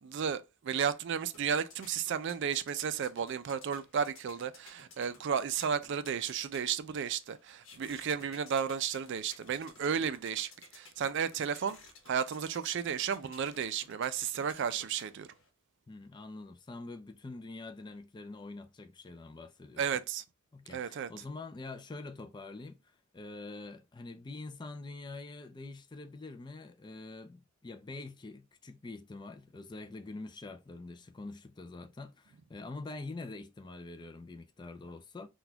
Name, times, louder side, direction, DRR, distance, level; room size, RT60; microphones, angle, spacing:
voice 1, 0.0-11.8 12.1-15.3 19.8-20.2 20.7-21.1, right 7 dB, 55° right, 0.4 m, -33 dB
sound 1, 1.0-15.5, left 4 dB, 65° left, 1.1 m, -57 dB
voice 2, 15.9-19.8 20.5-35.3, left 3 dB, 20° left, 0.3 m, -45 dB
3.9 x 2.3 x 2.7 m
head